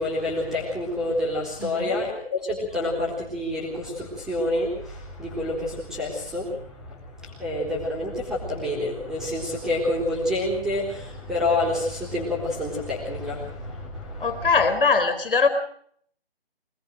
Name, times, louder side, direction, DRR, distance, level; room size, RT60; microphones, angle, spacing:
voice 1, 0.0-14.5, left 1 dB, ahead, -2 dB, 3.8 m, -28 dB
voice 2, 1.6-2.0 14.2-15.5, left 4 dB, 60° left, 10 dB, 4.1 m, -21 dB
24.5 x 19.5 x 6.5 m, 0.63 s
figure-of-eight pair, 165°, 31 cm